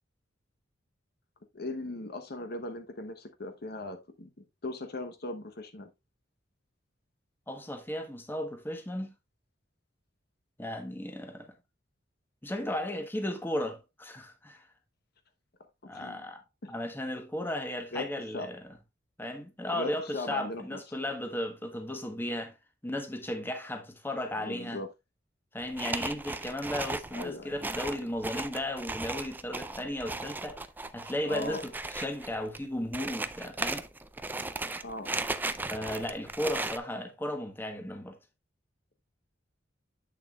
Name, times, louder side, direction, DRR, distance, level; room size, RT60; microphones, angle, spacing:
voice 1, 1.5-4.3 4.6-5.9 15.9-16.3 16.6-16.7 17.9-18.1 18.3-18.5 19.7-20.8 24.4-24.9 27.1-27.5 31.3-31.6 34.8-35.1, left 2 dB, 55° left, 0.9 m, -38 dB
voice 2, 7.5-9.1 10.6-11.5 12.4-14.7 15.8-16.4 16.7-18.7 19.2-22.6 22.8-24.8 25.5-30.6 30.9-33.8 35.7-38.2, left 1 dB, 10° left, 1.1 m, -35 dB
sound 1, 25.6-36.8, right 2 dB, 10° right, 0.4 m, -36 dB
8.1 x 6.8 x 2.3 m
head